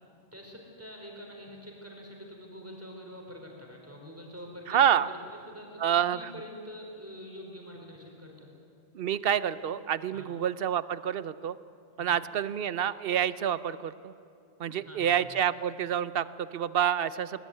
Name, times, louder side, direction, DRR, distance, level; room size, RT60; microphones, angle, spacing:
voice 1, 0.3-5.8 6.1-8.5 10.1-10.3 12.0-12.2 14.7-15.4, equal, 10° right, 0 dB, 4.5 m, -46 dB
voice 2, 4.7-5.1 5.8-6.2 8.9-11.6 12.0-14.1 14.6-17.4, right 9 dB, 60° right, 16 dB, 0.9 m, -28 dB
21.5 x 19.5 x 9.6 m, 2.5 s
omnidirectional pair, 1.1 m